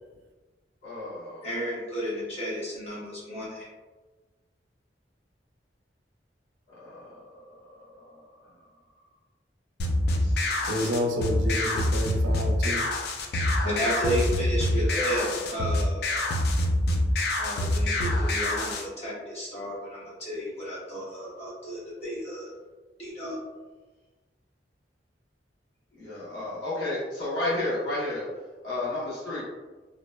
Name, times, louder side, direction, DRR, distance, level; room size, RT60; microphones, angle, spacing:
voice 1, 0.8-1.5 6.8-7.2 7.9-8.0 10.2-10.3 14.8-15.3 26.0-28.2 28.6-29.4, left 2 dB, 80° left, -9 dB, 1.0 m, -32 dB
voice 2, 1.4-3.7 13.6-16.0 16.8-16.9 17.4-22.5 23.0-23.4, equal, 35° left, -7 dB, 0.9 m, -32 dB
sound 1, 9.8-18.8, left 1 dB, 60° left, 0.3 m, -26 dB
voice 3, 10.7-12.8, equal, 90° right, 2 dB, 0.4 m, -29 dB
2.7 x 2.0 x 2.2 m, 1.2 s
head